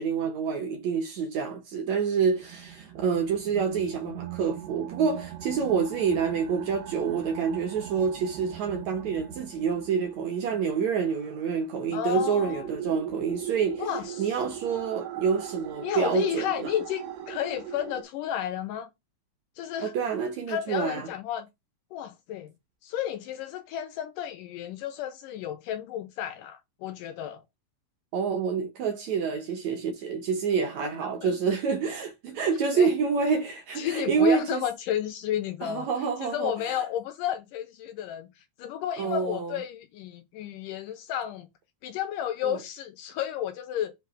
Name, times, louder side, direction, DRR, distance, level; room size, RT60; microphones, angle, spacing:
voice 1, 0.0-13.8 14.2-16.7 19.8-21.1 28.1-34.6 35.6-36.8 39.0-39.6 42.4-42.6, right 6 dB, 70° right, 1.7 m, -27 dB
sound 1, 2.3-18.0, right 10 dB, 85° right, 3.2 m, -41 dB
voice 2, 11.9-12.7 13.8-14.4 15.8-18.9 19.6-19.9 20.5-21.5 21.9-22.5 22.8-27.4 31.2-31.3 32.7-32.9 33.8-35.9 36.2-41.5 41.8-43.9, left 11 dB, 80° left, 1.9 m, -32 dB
8.0 x 2.8 x 6.0 m
omnidirectional pair, 4.4 m